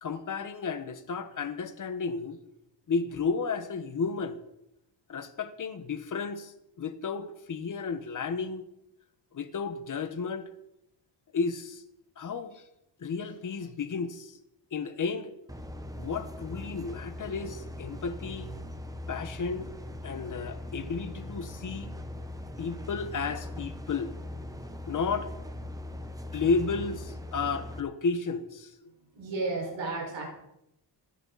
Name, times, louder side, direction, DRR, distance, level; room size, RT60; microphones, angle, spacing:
voice 1, 0.0-2.4 2.9-4.4 5.1-8.6 9.3-10.5 11.3-11.8 12.2-12.6 13.0-14.4 14.7-15.3 16.0-18.5 19.1-19.7 20.0-21.9 22.6-24.1 24.9-25.3 26.3-28.9, left 5 dB, 40° left, 1.2 m, -32 dB
sound 1, 15.5-27.8, left 1 dB, 10° right, 0.9 m, -40 dB
voice 2, 29.1-30.4, right 3 dB, 85° right, 5.6 m, -33 dB
27.5 x 11.0 x 4.1 m
wide cardioid pair, 165°, 45 cm